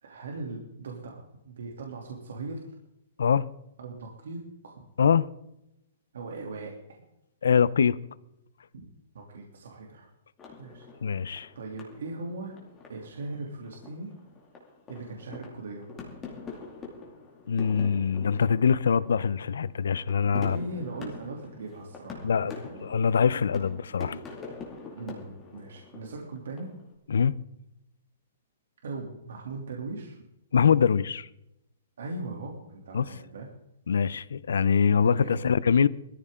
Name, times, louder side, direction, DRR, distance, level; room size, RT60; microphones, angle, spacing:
voice 1, 0.0-2.7 3.8-4.9 6.1-7.0 8.7-8.8 9.1-10.1 10.6-10.9 11.5-12.5 12.9-14.2 14.9-15.9 20.3-22.9 24.9-26.7 28.8-30.2 32.0-33.5 35.0-35.5, right 3 dB, 75° right, 3.0 m, -39 dB
voice 2, 7.4-8.0 11.0-11.5 17.5-20.6 22.2-24.2 27.1-27.4 30.5-31.3 32.9-33.1 33.9-35.9, left 6 dB, 90° left, 0.7 m, -23 dB
sound 1, 10.4-26.9, left 4 dB, 15° left, 2.4 m, -45 dB
20.5 x 14.0 x 3.8 m
hypercardioid pair, 175°, 0 cm